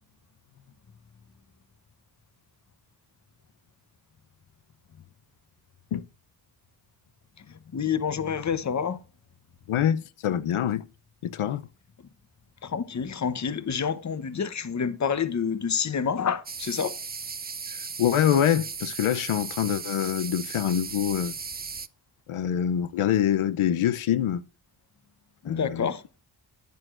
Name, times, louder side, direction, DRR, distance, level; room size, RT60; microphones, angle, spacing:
voice 1, 7.7-9.0 12.6-16.9 25.4-26.0, left 7 dB, 35° left, 0.8 m, -28 dB
voice 2, 9.7-10.8 11.2-11.7 17.7-21.3 22.3-24.4 25.4-25.9, left 10 dB, 85° left, 0.7 m, -25 dB
sound 1, 16.5-21.9, right 5 dB, 20° right, 0.4 m, -36 dB
10.0 x 9.3 x 2.5 m
wide cardioid pair, 110°, 48 cm